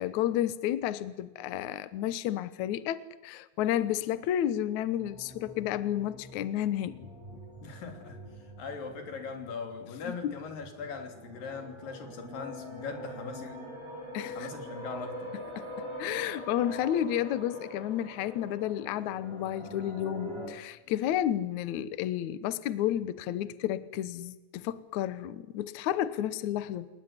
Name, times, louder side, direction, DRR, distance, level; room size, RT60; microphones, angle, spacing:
voice 1, 0.0-7.1 10.0-10.3 14.1-14.5 15.6-26.9, left 11 dB, 85° left, 1.7 m, -31 dB
sound 1, 3.9-20.5, equal, 5° right, 7.4 m, -44 dB
voice 2, 7.6-13.6 14.4-15.4, left 5 dB, 55° left, 4.8 m, -40 dB
28.5 x 19.0 x 9.8 m
omnidirectional pair, 4.9 m